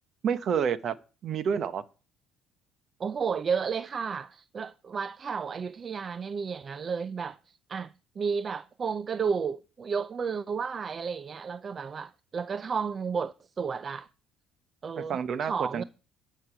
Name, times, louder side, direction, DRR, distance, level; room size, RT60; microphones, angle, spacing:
voice 1, 0.2-1.0 1.2-1.8 15.0-15.8, right 7 dB, 50° right, 0.9 m, -29 dB
voice 2, 3.0-14.1 14.8-15.8, right 6 dB, 35° right, 0.4 m, -32 dB
11.0 x 6.6 x 6.0 m
cardioid pair, 105°, 0 cm